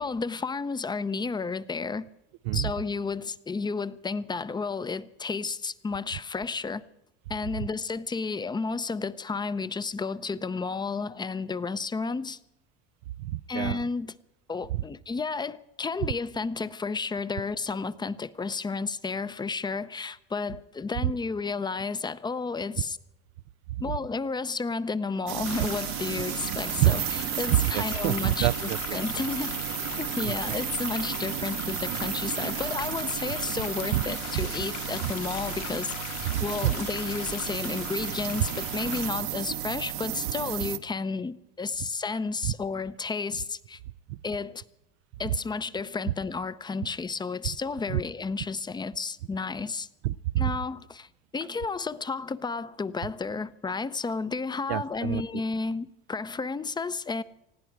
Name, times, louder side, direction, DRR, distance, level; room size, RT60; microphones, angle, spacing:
voice 1, 0.0-2.1 2.5-6.8 7.3-12.4 13.5-14.1 14.5-23.0 23.8-28.5 28.9-29.6 30.0-35.9 36.4-43.8 44.2-44.6 45.2-49.9 50.4-51.1 51.3-57.2, left 4 dB, 15° left, 0.6 m, -32 dB
voice 2, 13.2-13.9 14.7-14.8 23.9-24.0 26.8-27.0 27.5-29.0 30.2-30.5 33.9-34.0 34.3-34.5 36.2-36.8 42.4-42.5 44.1-44.2 46.1-46.2 47.9-48.0 50.0-50.5 54.7-55.4, right 15 dB, 90° right, 0.5 m, -27 dB
sound 1, 25.3-40.8, right 13 dB, 65° right, 1.0 m, -33 dB
sound 2, 25.4-39.1, left 14 dB, 55° left, 0.7 m, -39 dB
20.0 x 15.5 x 4.7 m
supercardioid pair, 120°, 31 cm